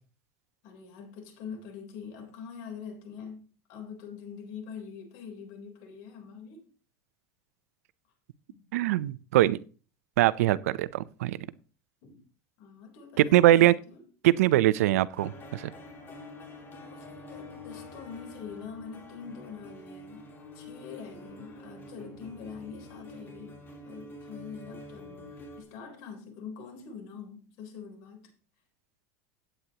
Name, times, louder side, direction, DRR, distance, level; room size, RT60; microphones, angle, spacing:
voice 1, 0.6-6.7 8.5-8.6 12.0-12.2 12.6-14.1 16.5-28.3, left 6 dB, 65° left, 3.7 m, -44 dB
voice 2, 8.7-9.6 10.2-11.4 13.2-13.7 14.2-15.7, right 14 dB, 85° right, 0.6 m, -22 dB
sound 1, 15.2-25.6, left 2 dB, 30° left, 3.5 m, -47 dB
14.5 x 9.2 x 2.9 m
supercardioid pair, 120°, 8 cm